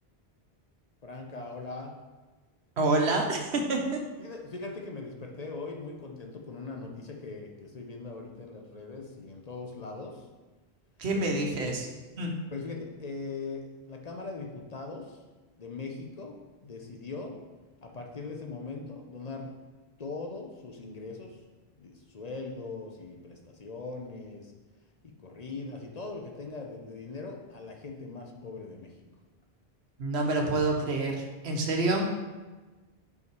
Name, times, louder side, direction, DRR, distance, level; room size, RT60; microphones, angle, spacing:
voice 1, 1.0-1.9 4.2-10.3 11.1-11.3 11.6-11.8 12.5-15.2 15.5-17.4 17.8-19.5 20.0-21.4 21.8-24.5 25.0-29.1, left 3 dB, 45° left, 2 dB, 0.8 m, -40 dB
voice 2, 2.8-4.0 11.0-11.9 12.2-12.3 30.0-32.1, right 2 dB, 85° right, 2 dB, 1.2 m, -27 dB
5.6 x 4.8 x 4.6 m, 1.2 s
omnidirectional pair, 1.1 m